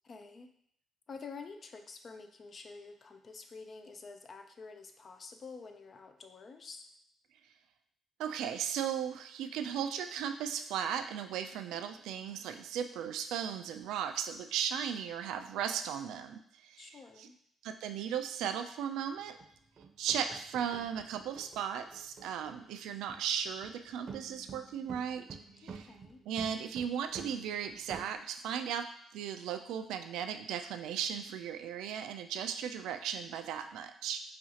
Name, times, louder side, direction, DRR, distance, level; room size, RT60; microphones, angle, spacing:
voice 1, 0.0-0.5 1.1-6.9 16.8-17.4 25.6-26.2, left 4 dB, 45° left, 6 dB, 0.5 m, -49 dB
voice 2, 8.2-17.3 17.6-19.4 20.0-25.3 25.6-25.9 26.3-34.2, right 8 dB, 90° right, 7 dB, 0.3 m, -36 dB
sound 1, 19.2-22.8 23.1-23.3 23.6-28.1, right 5 dB, 50° right, 0.6 m, -50 dB
5.6 x 2.4 x 2.8 m, 0.67 s
cardioid pair, 90°, 0 cm